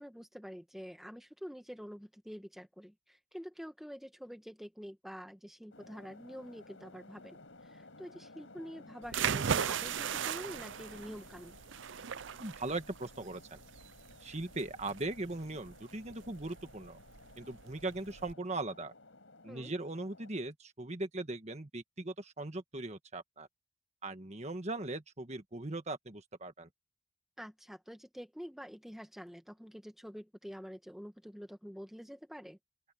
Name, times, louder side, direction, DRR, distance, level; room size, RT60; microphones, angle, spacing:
voice 1, 0.0-7.4 7.7-11.6 19.5-19.7 27.4-32.6, equal, ahead, 1.7 m, -47 dB
sound 1, 5.7-20.3, left 2 dB, 70° left, 5.1 m, -56 dB
sound 2, 9.0-18.3, right 7 dB, 65° right, 0.5 m, -38 dB
voice 2, 12.4-13.6 14.2-17.0 17.4-18.9 19.4-23.5 24.0-26.7, right 2 dB, 35° right, 1.5 m, -39 dB
open air
head